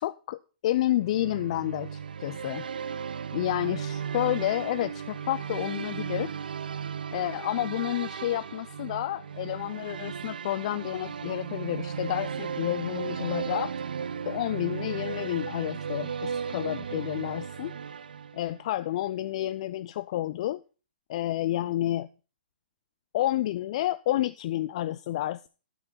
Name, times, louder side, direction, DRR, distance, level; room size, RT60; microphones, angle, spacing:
voice 1, 0.0-2.6 3.3-6.3 7.1-13.7 14.3-17.7 18.3-20.6 21.1-22.1 23.1-25.4, left 14 dB, 40° left, 14 dB, 0.4 m, -30 dB
sound 1, 1.0-18.7, right 7 dB, 60° right, 0.6 m, -36 dB
12.0 x 6.6 x 5.6 m, 0.35 s
figure-of-eight pair, 120°, 5 cm